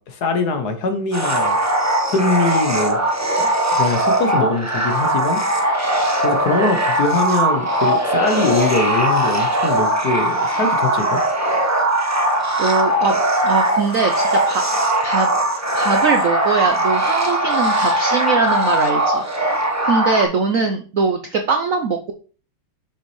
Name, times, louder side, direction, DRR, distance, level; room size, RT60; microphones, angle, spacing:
voice 1, 0.0-1.6 2.1-3.0 3.4-5.4 6.2-11.2, left 3 dB, 55° left, 6 dB, 1.4 m, -22 dB
sound 1, 1.1-20.2, right 1 dB, 15° right, 0.6 m, -19 dB
voice 2, 12.6-14.7 15.0-19.2 19.8-22.1, right 4 dB, 75° right, 6 dB, 0.7 m, -21 dB
6.9 x 6.6 x 3.2 m, 0.38 s
omnidirectional pair, 2.3 m